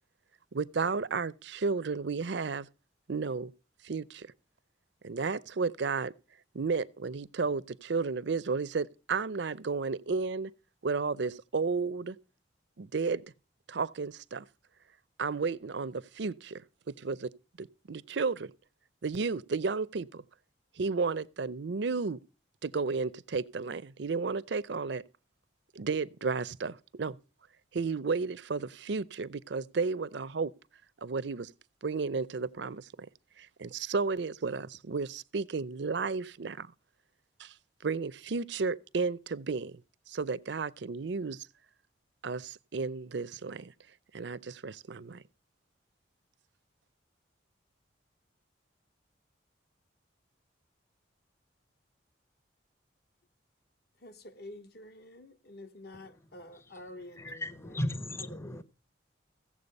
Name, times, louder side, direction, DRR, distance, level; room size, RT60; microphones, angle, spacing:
voice 1, 0.5-2.7 3.1-3.5 3.8-4.3 5.0-6.1 6.5-10.5 10.8-12.2 12.8-13.2 13.7-14.4 15.2-16.6 17.0-17.3 17.6-18.5 19.0-20.2 20.8-22.2 22.6-25.0 25.7-27.2 27.7-30.5 31.0-31.5 31.8-33.1 33.4-36.7 37.4-37.5 37.8-39.8 40.1-41.5 42.2-43.7 44.1-45.2, right 4 dB, 65° right, 0.6 m, -33 dB
voice 2, 54.0-57.8 58.2-58.6, left 1 dB, 55° left, 1.0 m, -49 dB
voice 3, 57.2-58.6, left 1 dB, 15° left, 0.6 m, -35 dB
15.5 x 7.5 x 5.3 m
head